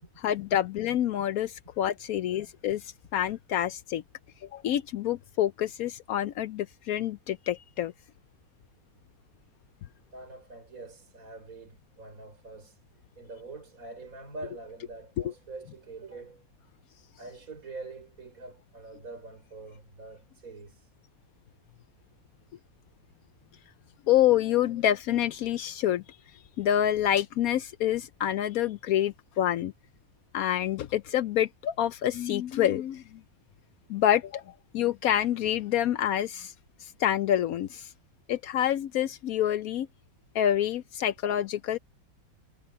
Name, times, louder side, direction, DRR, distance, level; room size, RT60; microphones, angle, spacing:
voice 1, 0.2-2.8 3.1-4.0 4.5-7.9 24.1-26.0 26.6-29.7 30.3-33.0 33.9-36.5 36.8-37.9 38.3-39.9 40.3-41.8, left 11 dB, 70° left, 0.8 m, -27 dB
voice 2, 10.1-12.8 13.2-16.4 17.2-20.9, right 3 dB, 50° right, 5.8 m, -44 dB
omnidirectional pair, 1.9 m